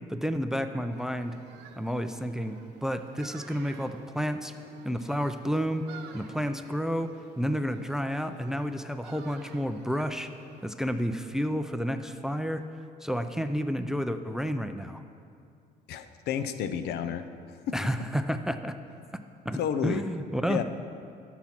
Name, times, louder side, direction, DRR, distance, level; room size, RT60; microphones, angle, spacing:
voice 1, 0.1-1.4 1.8-4.5 4.8-5.9 6.1-10.3 10.6-12.6 13.0-15.0 17.7-18.8 19.5-20.6, equal, 5° right, 9 dB, 0.4 m, -30 dB
sound 1, 0.9-10.7, right 6 dB, 85° right, 0.8 m, -51 dB
voice 2, 15.9-17.7 19.5-20.0 20.5-20.6, left 8 dB, 80° left, 10 dB, 0.6 m, -31 dB
13.0 x 6.0 x 5.9 m, 2.3 s
cardioid pair, 110°, 17 cm